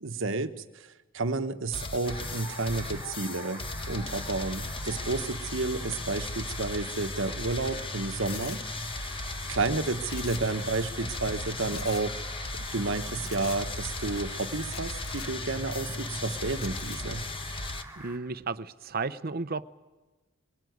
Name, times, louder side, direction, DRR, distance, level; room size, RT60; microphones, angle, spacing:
voice 1, 0.0-8.6 8.9-9.0 9.5-12.2 12.7-17.3, right 3 dB, 65° right, 9 dB, 1.1 m, -31 dB
sound 1, 1.7-17.8, left 2 dB, 25° left, 1.0 m, -36 dB
Fowl, 2.0-18.2, right 1 dB, 10° right, 3.2 m, -46 dB
sound 2, 8.3-8.6 10.1-10.6 10.8-10.9 11.7-12.0 13.2-13.6 14.6-15.3 16.4-17.0, left 10 dB, 85° left, 1.0 m, -45 dB
voice 2, 18.0-19.7, right 4 dB, 45° right, 14 dB, 0.7 m, -33 dB
22.5 x 18.0 x 9.4 m, 1.2 s
head